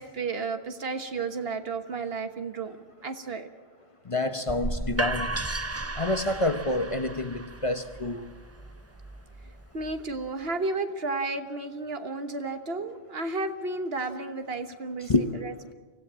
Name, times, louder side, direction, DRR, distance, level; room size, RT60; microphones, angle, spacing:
voice 1, 0.0-2.8 3.0-3.5 9.7-15.1 15.4-15.7, right 3 dB, 70° right, 8 dB, 1.5 m, -32 dB
voice 2, 4.1-5.3 6.0-8.3 15.1-15.3, left 2 dB, 35° left, 8 dB, 1.0 m, -27 dB
sound 1, 4.5-10.3, right 2 dB, 15° right, 0.6 m, -35 dB
24.5 x 16.5 x 7.5 m, 1.5 s
omnidirectional pair, 1.1 m